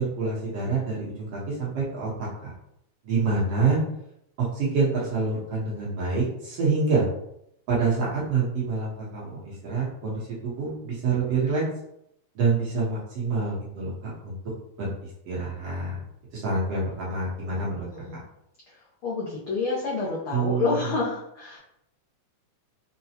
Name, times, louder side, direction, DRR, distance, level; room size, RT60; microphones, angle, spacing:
voice 1, 0.0-2.1 2.4-2.5 3.0-3.8 4.4-7.0 7.7-11.6 12.4-13.9 14.2-14.4 14.8-14.9 15.3-16.0 16.3-17.9 20.3-20.8, right 4 dB, 60° right, -6 dB, 1.8 m, -26 dB
voice 2, 19.0-21.6, left 4 dB, 80° left, -6 dB, 1.2 m, -28 dB
5.8 x 2.2 x 2.8 m, 0.77 s
omnidirectional pair, 3.5 m